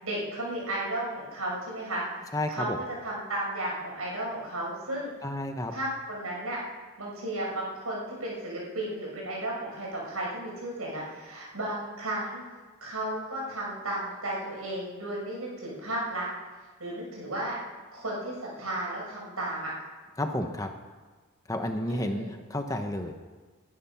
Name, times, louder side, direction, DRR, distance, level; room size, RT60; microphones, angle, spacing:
voice 1, 0.0-5.1 5.7-6.6 7.0-12.4 12.8-16.3 16.8-17.6 17.9-19.7 21.9-22.3, right 1 dB, 75° right, -3 dB, 6.6 m, -34 dB
voice 2, 2.3-2.8 5.2-5.7 20.2-20.7 21.5-23.1, left 1 dB, 15° left, 5 dB, 0.9 m, -31 dB
21.5 x 11.5 x 5.8 m, 1.4 s
head